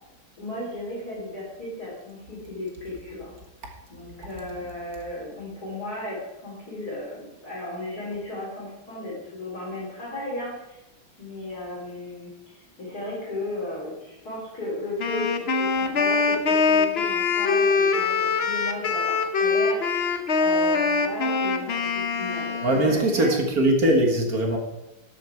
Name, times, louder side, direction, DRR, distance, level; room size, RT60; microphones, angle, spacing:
voice 1, 0.4-3.3 3.6-10.8 11.2-12.3 12.8-23.3, left 2 dB, 45° left, -5 dB, 4.0 m, -35 dB
Wind instrument woodwind instrument, 15.0-23.2, left 4 dB, 75° left, 0.5 m, -23 dB
voice 2, 22.6-24.6, right 1 dB, 45° right, 2 dB, 2.0 m, -21 dB
12.5 x 7.4 x 4.6 m, 0.96 s
omnidirectional pair, 2.3 m